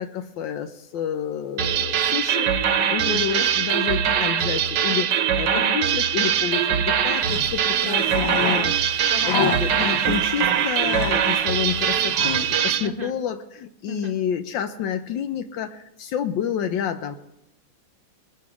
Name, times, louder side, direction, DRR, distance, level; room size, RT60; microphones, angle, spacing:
voice 1, 0.0-2.5 2.9-8.7 9.2-17.2, left 8 dB, 80° left, 7 dB, 1.4 m, -29 dB
sound 1, 1.6-12.9, right 8 dB, 70° right, 1.5 m, -22 dB
voice 2, 3.1-3.4 5.5-5.8 7.9-8.1 8.4-8.7 9.1-9.3 12.8-13.1 13.9-14.1, right 1 dB, 50° right, 4 dB, 0.6 m, -33 dB
sound 2, 7.1-12.7, left 4 dB, 55° left, 1.3 m, -32 dB
21.5 x 7.3 x 4.8 m, 0.84 s
omnidirectional pair, 2.0 m